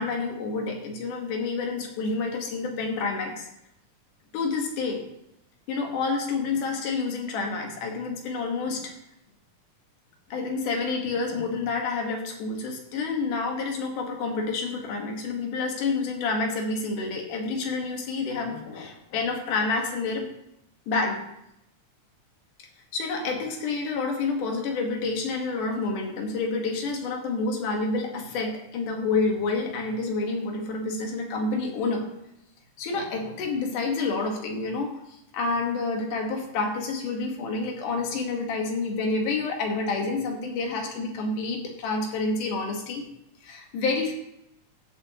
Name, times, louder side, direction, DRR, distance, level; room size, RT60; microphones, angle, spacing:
voice 1, 0.0-3.5 4.3-5.0 5.7-8.9 10.3-20.3 20.9-21.2 22.9-32.0 32.8-43.0 43.4-44.1, left 3 dB, 85° left, 2 dB, 3.0 m, -28 dB
14.5 x 7.8 x 2.9 m, 0.83 s
omnidirectional pair, 3.5 m